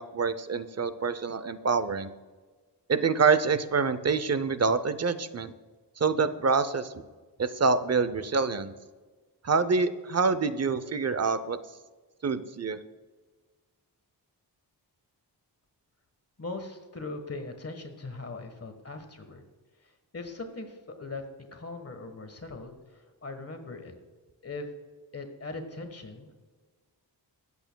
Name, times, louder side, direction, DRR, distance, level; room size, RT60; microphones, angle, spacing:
voice 1, 0.0-2.1 2.9-5.5 6.0-6.9 7.4-8.7 9.4-11.6 12.2-12.8, right 4 dB, 40° right, 13 dB, 0.6 m, -26 dB
voice 2, 16.4-19.4 19.8-21.2 21.5-23.9 24.4-24.7 25.1-26.4, left 3 dB, 35° left, 6 dB, 1.4 m, -40 dB
21.5 x 8.3 x 2.3 m, 1.3 s
cardioid pair, 75°, 42 cm